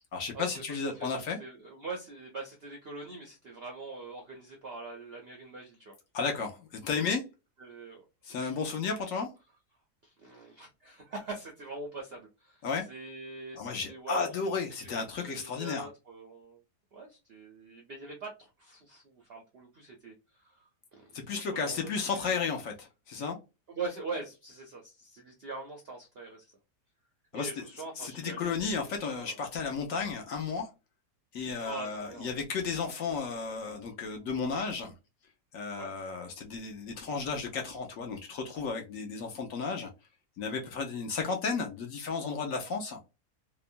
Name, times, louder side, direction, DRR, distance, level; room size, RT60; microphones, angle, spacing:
voice 1, 0.1-1.4 6.1-7.2 8.2-9.3 12.6-12.9 13.5-15.9 21.1-23.4 27.3-27.5 28.0-30.7 31.3-34.9 35.5-39.9 40.4-43.0, left 5 dB, 65° left, 0.9 m, -33 dB
voice 2, 0.9-5.9 7.6-8.0 8.4-8.6 10.0-14.9 15.2-16.6 16.9-21.1 21.5-22.5 23.7-26.5 27.3-28.7 29.0-29.4 31.6-32.3 35.8-35.9, right 3 dB, 65° right, 0.6 m, -43 dB
2.9 x 2.2 x 2.4 m
omnidirectional pair, 1.7 m